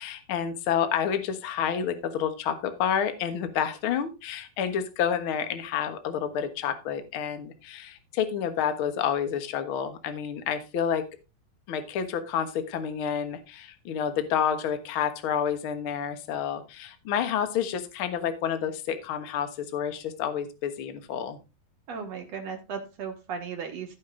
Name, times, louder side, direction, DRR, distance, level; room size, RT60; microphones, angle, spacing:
voice 1, 0.0-11.1 11.7-21.4, left 8 dB, 55° left, 8 dB, 1.5 m, -29 dB
voice 2, 21.9-24.0, right 6 dB, 55° right, 4 dB, 2.2 m, -36 dB
15.5 x 5.3 x 3.9 m, 0.27 s
omnidirectional pair, 4.1 m